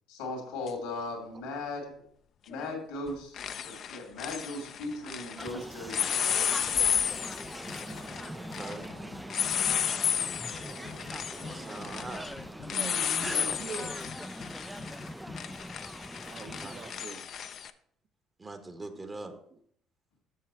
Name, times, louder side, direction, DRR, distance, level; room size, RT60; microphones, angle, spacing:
voice 1, 0.1-1.9 2.5-6.1, left 2 dB, 85° left, 1 dB, 2.4 m, -38 dB
sound 1, 0.7-0.8 2.5-2.8 3.1-5.5 5.9-17.7, left 8 dB, 55° left, 0.5 m, -33 dB
Train, 3.5-15.7, right 5 dB, 80° right, 1.1 m, -53 dB
sound 2, 5.4-16.9, equal, 5° right, 0.3 m, -42 dB
voice 2, 8.3-8.9 11.4-12.3 16.5-17.0 18.4-19.3, right 2 dB, 30° right, 7 dB, 1.0 m, -42 dB
voice 3, 12.7-14.0 16.2-17.2 18.9-19.6, right 6 dB, 50° right, 8 dB, 0.8 m, -43 dB
7.4 x 6.5 x 4.3 m, 0.64 s
hypercardioid pair, 65°, 0 cm